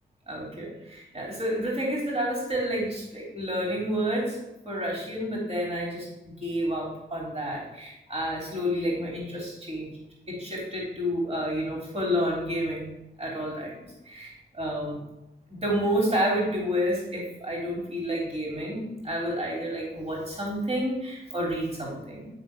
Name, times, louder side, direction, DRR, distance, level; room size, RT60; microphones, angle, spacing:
voice 1, 0.3-4.4 4.7-9.9 10.3-13.7 14.1-15.0 15.5-22.3, equal, 30° right, -3 dB, 3.5 m, -30 dB
11.5 x 3.9 x 6.1 m, 0.91 s
cardioid pair, 40°, 20 cm